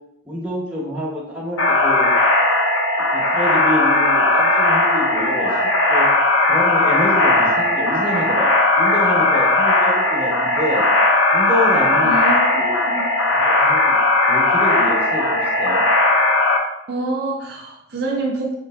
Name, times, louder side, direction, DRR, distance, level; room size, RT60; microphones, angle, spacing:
voice 1, 0.3-2.1 3.1-5.5 5.9-6.1 6.5-10.8 11.3-12.7 13.3-14.0 14.3-15.9, equal, 5° right, -5 dB, 0.9 m, -27 dB
sound 1, 1.6-16.6, left 2 dB, 65° left, 0.6 m, -17 dB
voice 2, 12.0-13.1 16.9-18.6, right 2 dB, 50° right, 0 dB, 0.4 m, -26 dB
4.5 x 3.2 x 2.2 m, 0.80 s
head